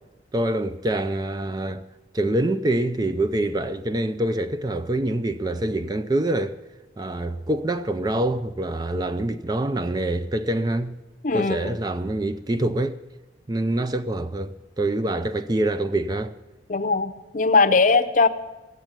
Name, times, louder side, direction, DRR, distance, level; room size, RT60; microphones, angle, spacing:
voice 1, 0.3-1.9 2.1-6.6 7.0-11.0 11.3-13.0 13.5-16.3, right 1 dB, 20° right, 0.4 m, -25 dB
voice 2, 11.2-11.8 16.7-18.3, left 4 dB, 45° left, 0.7 m, -20 dB
15.0 x 8.0 x 8.9 m
head